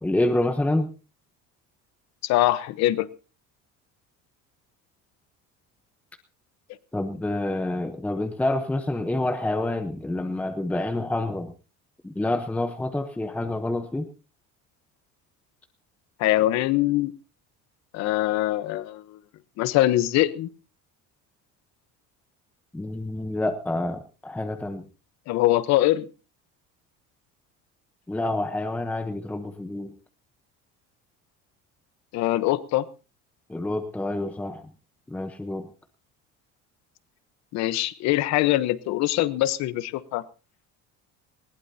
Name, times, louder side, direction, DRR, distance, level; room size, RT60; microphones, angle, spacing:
voice 1, 0.0-0.9 6.9-11.5 12.0-14.1 22.7-24.8 28.1-29.9 33.5-34.6 35.1-35.7, left 2 dB, 5° left, 6 dB, 0.9 m, -27 dB
voice 2, 2.2-3.1 16.2-17.1 17.9-19.0 19.6-20.5 25.3-26.1 32.1-32.8 37.5-40.2, left 15 dB, 60° left, 15 dB, 1.0 m, -23 dB
20.0 x 19.0 x 2.8 m, 0.33 s
cardioid pair, 180°, 31 cm